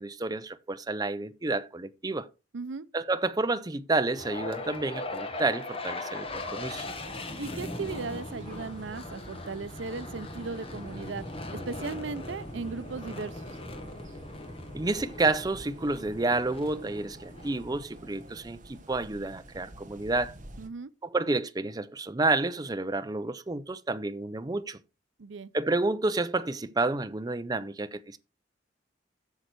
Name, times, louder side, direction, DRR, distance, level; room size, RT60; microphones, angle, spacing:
voice 1, 0.0-2.3 2.9-6.9 14.7-20.4 21.1-24.8 25.5-28.2, right 2 dB, 20° right, 0.5 m, -30 dB
voice 2, 2.5-2.9 7.4-11.2 11.5-13.6 20.6-20.9 25.2-25.5, right 4 dB, 80° right, 0.6 m, -37 dB
sound 1, 4.1-18.3, left 2 dB, 30° left, 1.3 m, -39 dB
sound 2, 6.8-20.7, right 1 dB, 45° right, 1.2 m, -49 dB
8.2 x 6.6 x 4.6 m
head